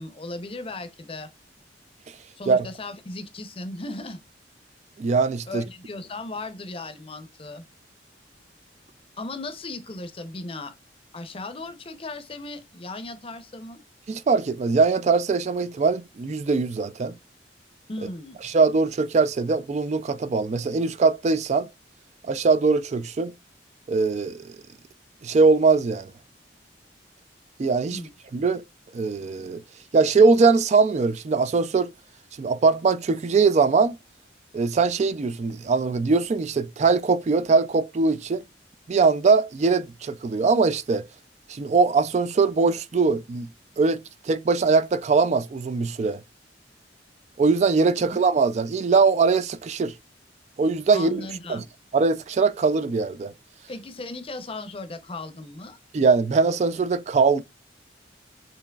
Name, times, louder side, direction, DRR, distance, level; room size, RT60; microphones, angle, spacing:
voice 1, 0.0-1.3 2.4-4.2 5.5-7.6 9.2-10.7 11.1-13.8 17.9-18.4 27.9-28.1 48.0-48.2 50.9-51.7 53.7-55.8, left 2 dB, 30° left, 0.6 m, -36 dB
voice 2, 5.0-5.6 14.1-17.2 18.4-21.7 22.2-23.3 23.9-24.4 25.2-26.1 27.6-28.0 28.3-28.6 28.9-29.6 29.9-31.9 32.4-34.0 34.5-38.4 38.9-41.1 41.5-43.5 43.8-46.2 47.4-49.9 50.6-51.2 51.5-51.6 51.9-53.3 55.9-57.4, right 4 dB, 40° right, 0.3 m, -21 dB
6.7 x 3.0 x 2.3 m
head